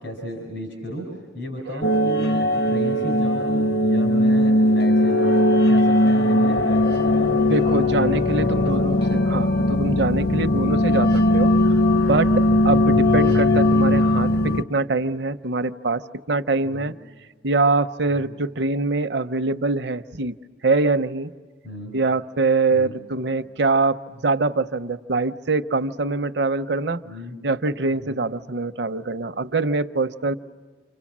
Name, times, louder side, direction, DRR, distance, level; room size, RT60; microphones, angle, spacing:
voice 1, 0.0-5.4 5.7-7.3 8.4-8.7 9.0-9.2 16.6-16.9 18.1-18.3 21.6-21.9 22.7-22.9 27.0-27.3 28.0-28.3, left 1 dB, 85° left, 1 dB, 4.6 m, -34 dB
sound 1, 1.8-14.6, left 1 dB, 50° left, 0.8 m, -19 dB
voice 2, 7.5-16.9 17.4-20.3 20.6-21.3 21.9-27.0 27.4-30.3, right 3 dB, 60° right, 9 dB, 0.7 m, -24 dB
30.0 x 26.5 x 7.3 m, 1.5 s
head